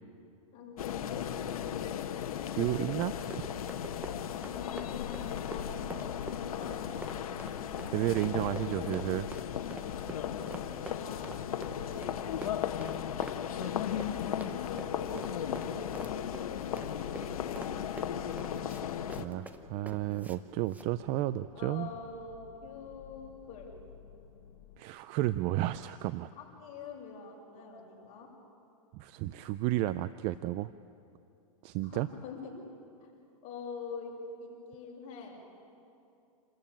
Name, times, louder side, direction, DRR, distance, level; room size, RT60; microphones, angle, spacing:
voice 1, 0.5-1.8 4.6-6.9 9.9-12.5 13.9-14.0 14.7-19.4 21.5-22.3 22.6-23.7 26.4-28.3 31.8-32.5 33.0-33.1 33.4-35.4, left 4 dB, 35° left, -2 dB, 6.7 m, -46 dB
sound 1, 0.8-19.2, left 9 dB, 75° left, 1.3 m, -36 dB
voice 2, 2.5-3.1 7.8-9.3 19.2-21.9 24.8-26.3 28.9-30.7 31.6-32.1, right 15 dB, 35° right, 14 dB, 0.5 m, -32 dB
Run, 3.0-20.4 20.7-20.9, right 2 dB, 10° right, 1.0 m, -47 dB
sound 2, 5.1-24.8, left 10 dB, 55° left, 1.5 m, -55 dB
28.0 x 14.0 x 8.8 m, 2.6 s
hypercardioid pair, 135°, 19 cm